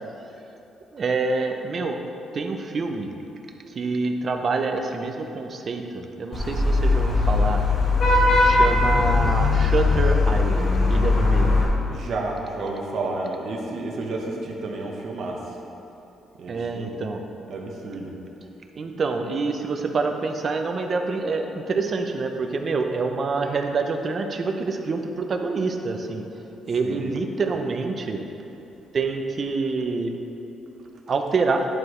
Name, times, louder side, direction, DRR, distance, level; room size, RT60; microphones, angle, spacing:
voice 1, 0.9-2.0 2.3-3.1 3.8-7.6 8.4-11.6 16.5-17.2 18.8-26.2 26.7-28.2 28.9-30.1 31.1-31.7, right 4 dB, 45° right, 5 dB, 0.6 m, -26 dB
Vehicle horn car horn honking / Traffic noise roadway noise, 6.3-11.6, left 3 dB, 55° left, 1.4 m, -19 dB
voice 2, 11.9-15.6 16.4-17.0 17.5-18.1 26.8-27.1, right 2 dB, 60° right, 0 dB, 1.0 m, -31 dB
10.5 x 4.6 x 3.2 m, 3.0 s
cardioid pair, 90°, 0 cm